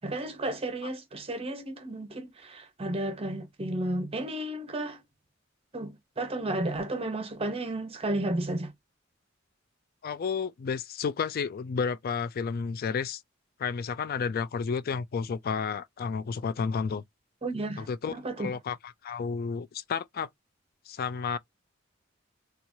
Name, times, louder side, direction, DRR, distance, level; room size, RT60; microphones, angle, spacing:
voice 1, 0.0-5.0 5.7-8.7 17.4-18.5, right 1 dB, 30° right, 0.8 m, -33 dB
voice 2, 10.0-13.2 13.6-17.0 17.8-20.3 20.9-21.4, left 5 dB, 50° left, 0.4 m, -31 dB
2.9 x 2.4 x 2.7 m
head